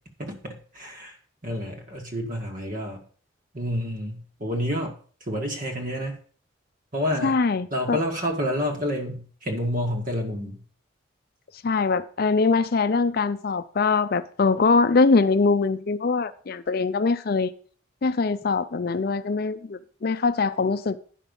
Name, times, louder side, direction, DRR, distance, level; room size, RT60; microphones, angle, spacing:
voice 1, 0.2-1.2 1.4-3.0 3.5-4.9 5.3-6.2 6.9-7.4 7.7-10.6, equal, 40° right, 1.8 m, -29 dB
voice 2, 7.2-8.0 11.6-17.5 18.0-21.0, left 4 dB, 50° left, 0.4 m, -22 dB
10.0 x 6.0 x 5.4 m
head